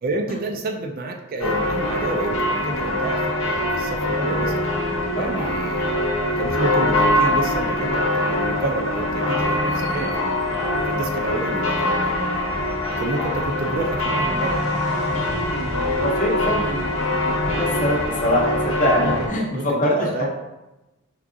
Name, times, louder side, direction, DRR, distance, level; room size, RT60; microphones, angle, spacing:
voice 1, 0.0-4.7 5.1-10.4 10.9-12.4 12.9-14.6 16.6-16.8 18.9-19.1 19.4-20.3, right 2 dB, 40° right, 3 dB, 0.3 m, -29 dB
sound 1, 1.4-19.3, left 1 dB, 65° left, 0.8 m, -23 dB
voice 2, 5.1-5.5 15.1-20.3, left 1 dB, 35° left, -1 dB, 0.7 m, -24 dB
4.5 x 3.6 x 2.5 m, 1.0 s
head